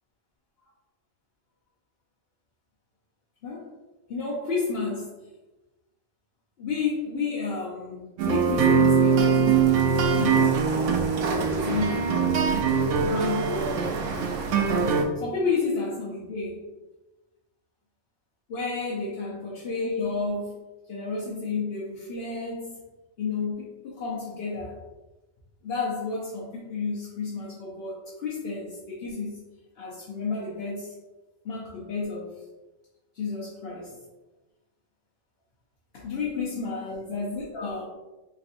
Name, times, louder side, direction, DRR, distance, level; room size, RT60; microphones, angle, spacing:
voice 1, 4.1-5.1 6.6-10.5 11.2-12.5 13.0-13.9 15.1-16.6 18.5-20.6 20.9-22.8 23.2-24.8 25.6-29.4 29.7-30.9 31.4-32.4 33.1-34.0 35.9-37.8, left 4 dB, 60° left, -6 dB, 0.9 m, -31 dB
sound 1, 8.2-15.0, right 6 dB, 80° right, 0.9 m, -22 dB
4.0 x 3.2 x 2.5 m, 1.1 s
omnidirectional pair, 1.2 m